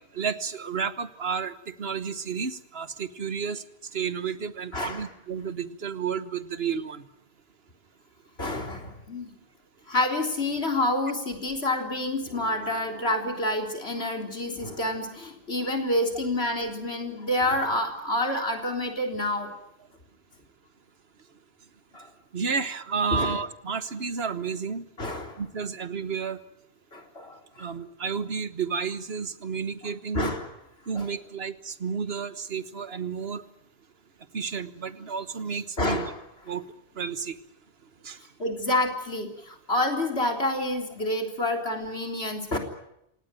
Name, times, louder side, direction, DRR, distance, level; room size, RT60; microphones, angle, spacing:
voice 1, 0.1-3.6 3.9-7.0 22.3-24.8 25.4-26.4 27.6-30.3 30.9-33.4 34.3-36.1 36.5-36.7 37.0-37.4 38.0-38.2, right 6 dB, 75° right, 13 dB, 1.5 m, -31 dB
voice 2, 4.7-5.1 8.4-9.3 9.9-19.5 21.9-22.1 23.1-23.4 25.0-25.4 26.9-27.7 30.1-30.5 30.9-31.1 35.8-36.2 38.4-42.6, left 1 dB, 85° left, 3 dB, 4.0 m, -28 dB
27.5 x 18.0 x 9.2 m, 0.80 s
omnidirectional pair, 1.0 m